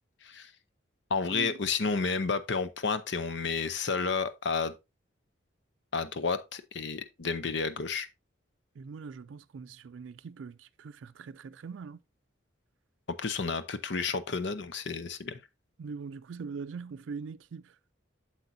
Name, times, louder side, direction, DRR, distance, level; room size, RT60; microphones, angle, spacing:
voice 1, 1.1-4.7 5.9-8.1 13.1-15.4, left 4 dB, 70° left, 0.7 m, -31 dB
voice 2, 8.8-12.0 15.8-17.8, right 5 dB, 85° right, 0.4 m, -42 dB
7.9 x 7.4 x 2.7 m
head